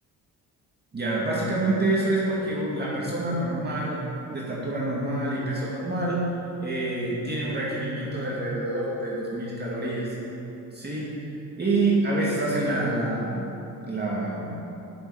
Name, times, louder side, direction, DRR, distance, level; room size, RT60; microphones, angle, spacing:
voice 1, 0.9-4.0 4.3-6.2 6.6-10.1 10.7-11.1 11.6-13.5 13.9-14.5, right 2 dB, 25° right, -6 dB, 2.4 m, -27 dB
10.5 x 7.9 x 5.0 m, 2.9 s
cardioid pair, 85°, 37 cm